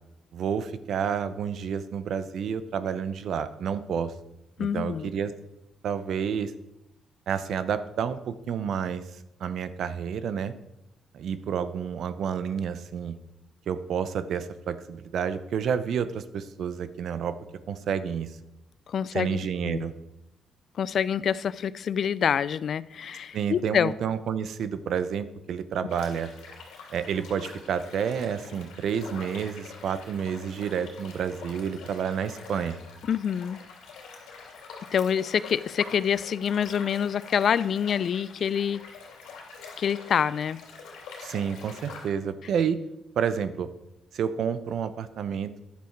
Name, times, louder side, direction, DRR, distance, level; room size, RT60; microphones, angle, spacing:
voice 1, 0.3-4.1 4.6-5.3 5.8-6.5 7.3-9.0 9.4-10.5 11.1-13.1 13.7-17.4 17.7-18.3 19.1-19.9 23.3-26.3 26.9-32.8 41.2-42.8 43.2-43.7 44.1-45.6, right 7 dB, 70° right, 0.7 m, -29 dB
voice 2, 4.6-5.1 18.9-19.9 20.8-23.9 33.0-33.6 34.9-38.8 39.8-40.6, left 8 dB, 60° left, 0.3 m, -26 dB
sound 1, 25.9-42.1, left 5 dB, 90° left, 3.0 m, -45 dB
10.5 x 7.0 x 4.6 m
cardioid pair, 90°, 0 cm